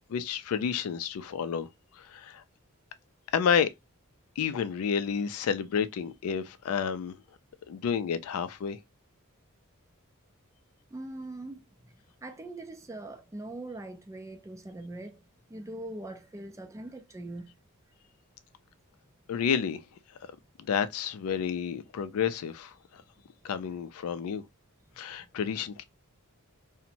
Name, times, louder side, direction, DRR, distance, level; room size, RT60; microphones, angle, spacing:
voice 1, 0.1-1.7 2.0-2.4 3.3-3.7 4.4-7.2 7.7-8.8 19.3-19.8 20.7-22.7 23.4-24.4 25.0-25.8, left 7 dB, 70° left, 0.3 m, -30 dB
voice 2, 10.9-11.9 12.2-15.2 15.5-17.5, right 2 dB, 15° right, 0.4 m, -42 dB
2.6 x 2.1 x 2.7 m
head